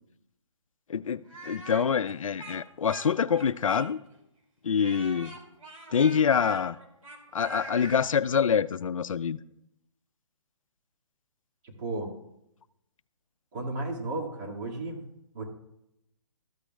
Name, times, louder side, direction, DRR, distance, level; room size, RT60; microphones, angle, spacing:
voice 1, 0.9-4.0 4.6-5.3 5.9-6.8 7.3-9.4, left 7 dB, 80° left, 0.4 m, -26 dB
Speech, 1.3-4.2 4.8-8.0, right 2 dB, 90° right, 2.2 m, -43 dB
voice 2, 11.6-12.1 13.5-15.1 15.3-15.4, right 2 dB, 35° right, 2.1 m, -34 dB
13.5 x 8.7 x 2.3 m
hypercardioid pair, 140°, 17 cm